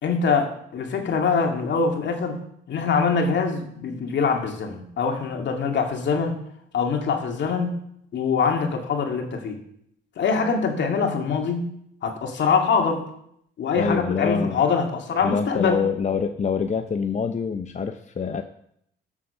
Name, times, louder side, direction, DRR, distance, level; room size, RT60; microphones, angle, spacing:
voice 1, 0.0-2.4 2.7-6.4 6.7-7.8 8.1-9.6 10.2-11.7 12.0-13.0 13.6-15.8, left 5 dB, 65° left, 3 dB, 2.3 m, -24 dB
voice 2, 13.8-14.7 15.2-18.4, left 5 dB, 35° left, 7 dB, 0.8 m, -25 dB
13.5 x 7.4 x 5.7 m, 0.71 s
cardioid pair, 90°, 20 cm